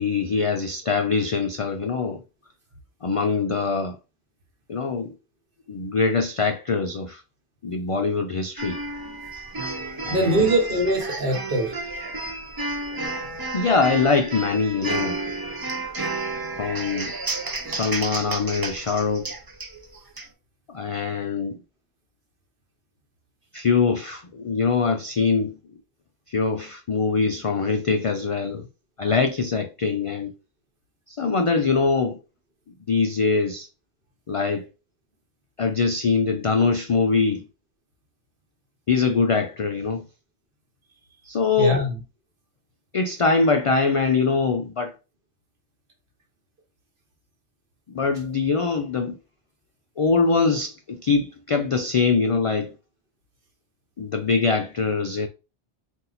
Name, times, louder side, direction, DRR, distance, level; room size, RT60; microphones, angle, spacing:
voice 1, 0.0-2.2 3.0-4.0 4.7-5.1 5.7-7.2 7.6-8.8 10.1-10.5 13.5-15.2 16.6-17.1 17.7-19.3 20.7-21.5 23.5-25.5 26.3-28.6 29.0-30.3 31.2-32.2 32.9-33.7 34.3-34.7 35.6-37.4 38.9-40.0 41.3-41.8 42.9-44.9 47.9-49.2 50.0-52.7 54.0-55.3, left 4 dB, 65° left, 0.3 m, -23 dB
sound 1, 8.6-20.3, right 2 dB, 30° right, 0.5 m, -31 dB
voice 2, 10.1-11.8 41.6-42.0, right 1 dB, 60° right, 1.3 m, -22 dB
4.1 x 2.6 x 3.9 m
omnidirectional pair, 1.1 m